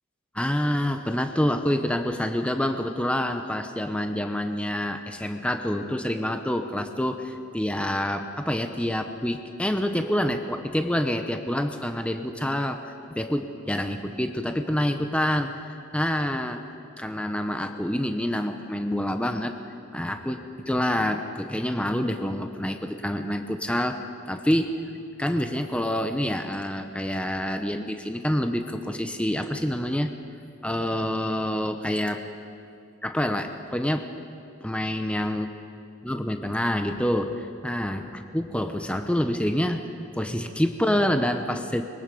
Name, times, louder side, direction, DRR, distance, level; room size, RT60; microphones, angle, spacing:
voice 1, 0.3-12.8 13.1-16.6 17.0-19.5 19.9-24.0 24.3-24.7 25.2-30.1 30.6-32.2 33.0-34.1 34.6-35.5 36.0-39.8 40.1-41.8, left 1 dB, 5° left, 6 dB, 0.7 m, -27 dB
24.5 x 22.0 x 5.3 m, 2.5 s
head